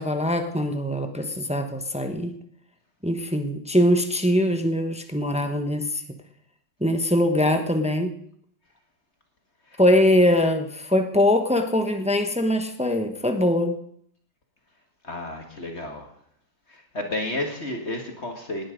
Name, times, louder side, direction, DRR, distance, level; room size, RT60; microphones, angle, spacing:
voice 1, 0.0-2.3 3.0-6.0 6.8-8.1 9.8-13.8, left 1 dB, 5° right, 6 dB, 0.6 m, -22 dB
voice 2, 15.0-16.1 16.7-18.7, left 1 dB, 35° left, 3 dB, 1.9 m, -32 dB
18.5 x 10.5 x 5.2 m, 0.67 s
omnidirectional pair, 2.2 m